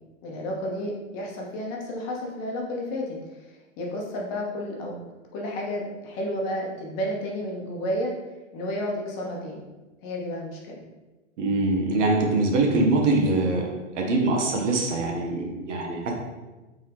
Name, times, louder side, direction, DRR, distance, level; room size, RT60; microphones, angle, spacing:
voice 1, 0.2-5.0 5.3-8.1 8.5-9.7 10.0-10.8, equal, 40° left, -1 dB, 1.0 m, -31 dB
voice 2, 11.4-13.7 13.9-16.1, right 2 dB, 65° right, 0 dB, 1.0 m, -23 dB
3.5 x 2.7 x 3.5 m, 1.1 s
hypercardioid pair, 115°, 38 cm